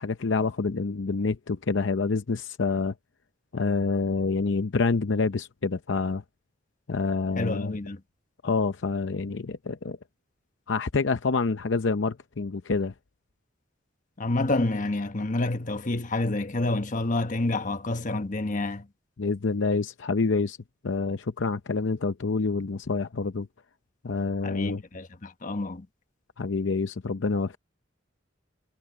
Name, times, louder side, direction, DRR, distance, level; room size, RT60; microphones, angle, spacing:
voice 1, 0.0-2.9 3.5-6.2 6.9-7.8 8.4-10.0 10.7-12.9 19.2-20.6 20.8-23.5 24.0-24.8 26.4-27.6, left 4 dB, 70° left, 0.7 m, -27 dB
voice 2, 7.4-8.0 14.2-18.9 24.4-25.9, left 2 dB, 45° left, 1.2 m, -28 dB
head